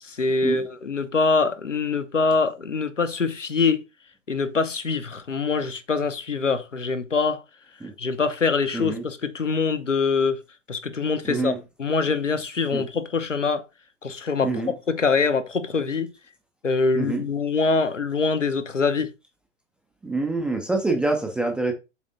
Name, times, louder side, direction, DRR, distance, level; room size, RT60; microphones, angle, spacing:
voice 1, 0.0-3.8 4.3-7.4 8.0-10.4 10.7-11.5 11.8-13.6 14.0-14.5 14.9-16.1 16.6-19.1, left 4 dB, 85° left, 1.0 m, -24 dB
voice 2, 8.7-9.0 11.2-11.6 12.7-12.8 14.4-14.7 17.0-17.2 20.0-21.7, right 3 dB, 5° right, 0.3 m, -26 dB
7.4 x 3.3 x 3.9 m
figure-of-eight pair, 100°, 36 cm